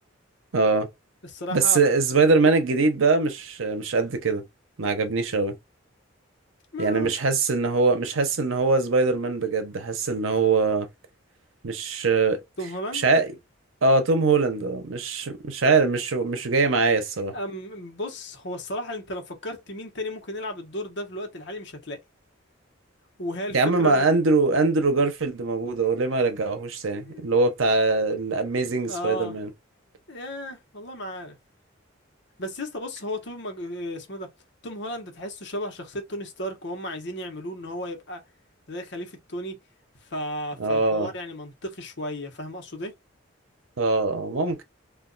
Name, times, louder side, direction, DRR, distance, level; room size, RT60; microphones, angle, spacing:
voice 1, 0.5-0.9 1.5-4.4 4.8-5.6 6.8-10.9 11.6-12.4 12.9-13.3 13.8-17.3 23.5-29.5 40.6-41.1 43.8-44.6, right 3 dB, 80° right, 0.8 m, -22 dB
voice 2, 1.2-1.9 2.3-2.4 6.7-7.1 12.6-13.1 17.3-22.0 23.2-24.1 26.9-27.2 28.9-29.4 30.1-31.3 32.4-34.3 34.6-38.2 38.7-39.6 40.0-42.9, left 1 dB, 60° left, 1.0 m, -34 dB
2.4 x 2.3 x 3.9 m
head